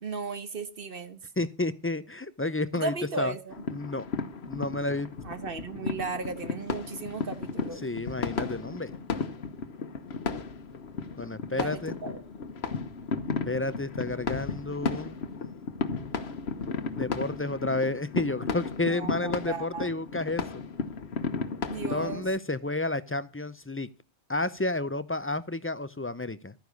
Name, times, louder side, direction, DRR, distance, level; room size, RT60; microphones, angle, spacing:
voice 1, 0.0-1.2 2.7-3.5 5.2-7.8 11.5-12.2 18.8-19.9 21.6-22.2, right 4 dB, 55° right, 11 dB, 1.4 m, -36 dB
voice 2, 1.4-3.3 3.7-4.1 4.5-5.1 7.8-8.9 11.2-11.9 13.5-15.2 17.0-20.4 21.9-23.9 24.3-26.5, left 2 dB, 20° left, 15 dB, 0.3 m, -31 dB
sound 1, 3.5-22.3, left 5 dB, 65° left, 1.3 m, -34 dB
12.5 x 9.5 x 5.2 m, 0.35 s
omnidirectional pair, 1.2 m